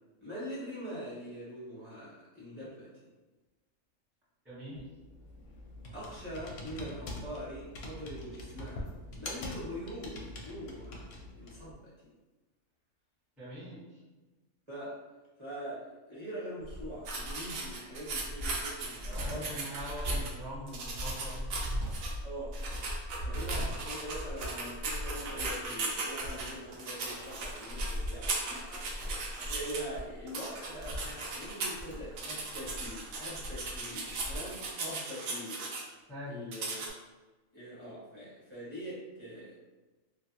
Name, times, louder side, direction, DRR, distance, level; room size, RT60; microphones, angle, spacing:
voice 1, 0.2-2.9 5.9-8.9 9.2-11.0 11.4-11.9 14.7-15.0 15.4-19.8 20.0-20.2 22.2-22.6 23.2-28.9 29.3-35.6 36.2-36.8 37.5-39.6, equal, 25° right, -9 dB, 1.0 m, -43 dB
voice 2, 4.4-4.9 13.4-14.0 19.1-21.5 36.1-36.4, equal, ahead, -11 dB, 0.6 m, -43 dB
Computer keyboard, 4.8-11.7, left 2 dB, 65° left, 0.7 m, -44 dB
Cricket, 16.6-34.4, equal, 55° right, 0.8 m, -40 dB
sound 1, 17.1-20.3 20.7-22.1 22.5-29.8 30.3-31.8 32.2-35.8 36.5-36.9, right 3 dB, 85° right, 1.0 m, -38 dB
2.6 x 2.3 x 2.6 m, 1.2 s
omnidirectional pair, 1.4 m